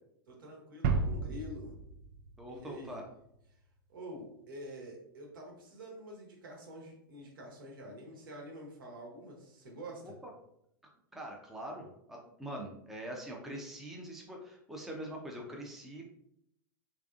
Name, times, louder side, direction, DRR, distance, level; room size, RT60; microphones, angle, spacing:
voice 1, 0.3-1.7 2.5-3.0 3.9-10.1, equal, 65° right, -1 dB, 1.3 m, -47 dB
sound 1, 0.8-3.5, right 4 dB, 45° right, 0.4 m, -34 dB
voice 2, 2.4-3.0 10.0-10.1 11.1-16.1, right 1 dB, ahead, -1 dB, 0.6 m, -43 dB
3.5 x 3.2 x 2.4 m, 0.75 s
figure-of-eight pair, 95°, 12 cm